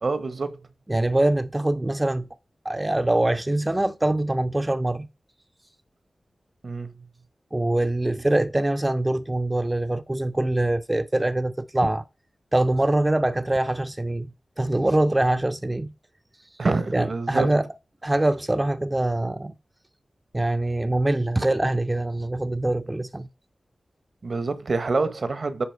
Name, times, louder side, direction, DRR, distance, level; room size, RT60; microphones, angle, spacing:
voice 1, 0.0-0.7 6.6-6.9 16.6-17.5 24.2-25.6, right 3 dB, 60° right, 1.1 m, -26 dB
voice 2, 0.9-2.3 2.6-5.1 7.5-12.0 12.5-15.9 16.5-16.6 16.9-17.7 18.0-19.5 20.3-23.3, right 1 dB, 25° right, 0.6 m, -24 dB
9.9 x 4.4 x 4.7 m
cardioid pair, 45°, 0 cm